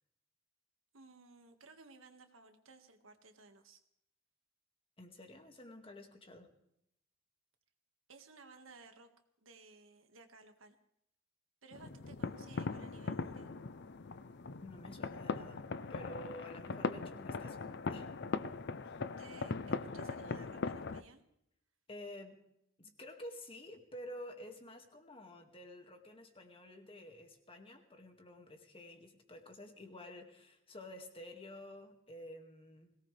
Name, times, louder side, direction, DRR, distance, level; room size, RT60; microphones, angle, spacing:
voice 1, 0.9-3.8 8.1-9.1 9.4-10.8 11.6-13.5 18.8-21.2, right 3 dB, 90° right, 6 dB, 1.8 m, -58 dB
voice 2, 5.0-6.5 14.5-18.2 18.4-18.5 21.9-22.4 22.8-33.0, left 1 dB, 30° left, 4 dB, 2.1 m, -51 dB
sound 1, 11.7-21.0, left 4 dB, 55° left, 0.6 m, -40 dB
22.0 x 18.0 x 3.4 m, 0.78 s
head